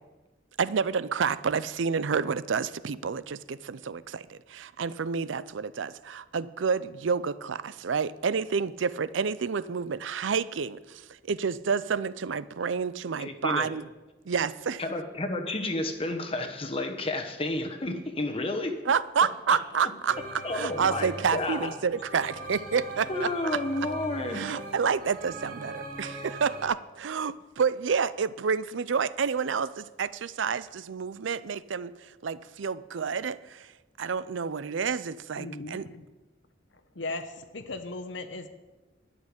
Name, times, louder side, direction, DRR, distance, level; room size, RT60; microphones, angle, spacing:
voice 1, 0.6-13.9 14.3-14.8 18.9-20.2 20.5-23.3 24.3-33.7 34.0-35.9, right 6 dB, 90° right, 17 dB, 0.5 m, -29 dB
voice 2, 13.2-13.7 14.8-18.8 20.4-21.7 23.1-24.5, left 2 dB, 30° left, 5 dB, 1.1 m, -31 dB
sound 1, 20.1-26.7, right 1 dB, 45° right, 3.4 m, -40 dB
voice 3, 35.4-36.0 36.9-38.5, left 2 dB, 80° left, 8 dB, 0.9 m, -37 dB
12.0 x 6.7 x 9.6 m, 1.2 s
head